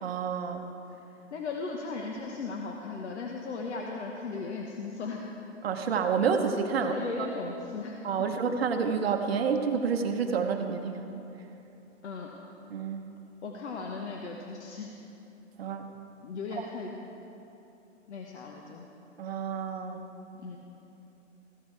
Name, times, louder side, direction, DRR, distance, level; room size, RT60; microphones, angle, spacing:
voice 1, 0.0-0.7 5.6-7.3 8.0-11.0 12.7-13.0 15.6-15.9 16.5-16.7 19.2-20.0, right 6 dB, 55° right, 5 dB, 0.9 m, -29 dB
voice 2, 1.3-5.2 6.7-8.0 12.0-12.3 13.4-14.9 16.2-16.9 18.1-18.9 20.4-20.6, left 4 dB, 65° left, 0 dB, 1.2 m, -37 dB
15.0 x 12.5 x 3.3 m, 2.9 s
hypercardioid pair, 165°, 37 cm